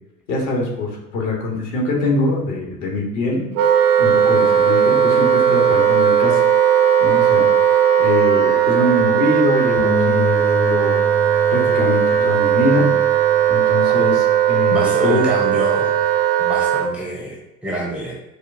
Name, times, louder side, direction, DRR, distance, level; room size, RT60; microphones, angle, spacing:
voice 1, 0.3-3.5 4.0-6.4 7.0-7.5 8.0-11.0 11.5-12.9 13.5-15.2, left 2 dB, 55° left, -1 dB, 1.3 m, -23 dB
Wind instrument woodwind instrument, 3.5-16.9, right 9 dB, 70° right, 0.6 m, -17 dB
Bass guitar, 9.8-16.0, left 2 dB, 30° left, 0.8 m, -29 dB
voice 2, 14.7-15.9 16.4-18.1, equal, 5° right, -3 dB, 0.6 m, -26 dB
4.8 x 2.3 x 2.6 m, 0.92 s
figure-of-eight pair, 75°, 47 cm